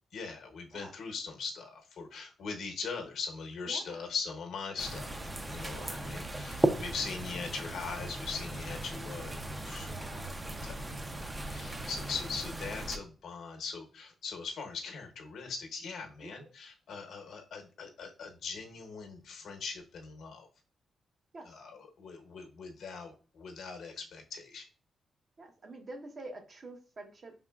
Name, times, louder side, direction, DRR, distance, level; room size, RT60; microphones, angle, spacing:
voice 1, 0.1-5.2 5.5-10.2 10.6-20.5 21.4-24.7, left 5 dB, 75° left, 3 dB, 0.9 m, -41 dB
voice 2, 3.7-4.0 5.7-6.1 9.9-10.3 16.2-16.3 21.3-21.6 25.4-27.3, right 2 dB, 45° right, 4 dB, 0.9 m, -47 dB
sound 1, 4.8-13.0, right 1 dB, 15° right, 0.5 m, -36 dB
4.8 x 3.6 x 2.3 m, 0.37 s
cardioid pair, 110°, 0 cm